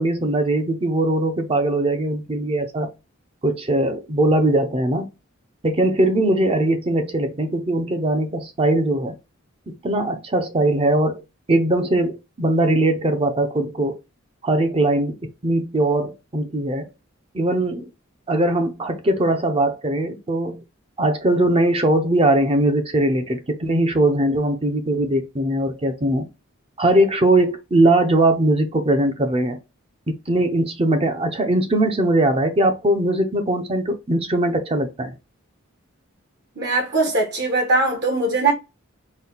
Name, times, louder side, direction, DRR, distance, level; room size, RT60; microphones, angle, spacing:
voice 1, 0.0-2.9 3.4-5.1 5.6-9.2 9.7-11.2 11.5-14.0 14.4-15.2 15.4-16.9 17.3-17.9 18.3-20.6 21.0-26.3 26.8-29.6 30.1-35.1, right 1 dB, 30° right, 0.7 m, -20 dB
voice 2, 36.6-38.5, right 3 dB, 55° right, 1.3 m, -20 dB
4.0 x 2.3 x 4.0 m
head